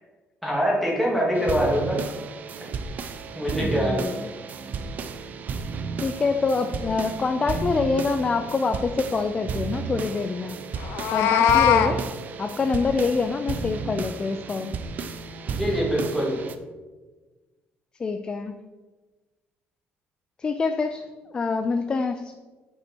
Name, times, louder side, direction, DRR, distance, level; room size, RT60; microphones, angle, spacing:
voice 1, 0.4-2.0 3.3-4.0 15.5-16.3, equal, ahead, -4 dB, 2.1 m, -24 dB
sound 1, 1.3-16.6, right 5 dB, 40° right, 0.5 m, -33 dB
voice 2, 3.6-4.3 6.0-10.6 11.1-12.1 12.4-14.8 18.0-18.6 20.4-22.3, left 4 dB, 20° left, 8 dB, 0.3 m, -26 dB
Meow, 10.8-11.9, left 9 dB, 90° left, 0.6 m, -20 dB
8.3 x 5.5 x 4.4 m, 1.3 s
cardioid pair, 155°, 4 cm